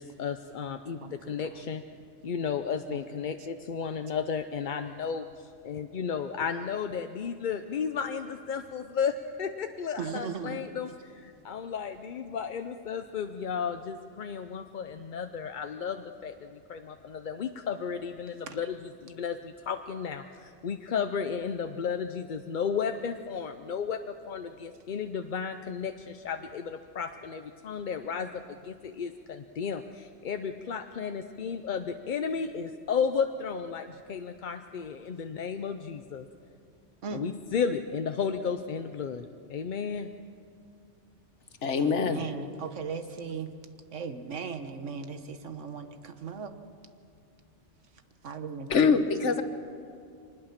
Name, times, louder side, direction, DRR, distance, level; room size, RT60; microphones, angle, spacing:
voice 1, 0.0-1.8 2.2-5.2 5.6-18.8 19.0-36.2 37.1-40.1, left 6 dB, 50° left, 7 dB, 0.7 m, -33 dB
voice 2, 1.0-1.6 2.9-3.3 10.0-10.6 18.5-18.7 37.0-37.2 41.8-43.5 43.9-46.5 48.2-49.0, right 6 dB, 85° right, 8 dB, 1.5 m, -38 dB
voice 3, 41.6-42.2 48.7-49.4, left 5 dB, 75° left, 9 dB, 1.4 m, -24 dB
24.0 x 20.0 x 5.9 m, 2.4 s
omnidirectional pair, 1.2 m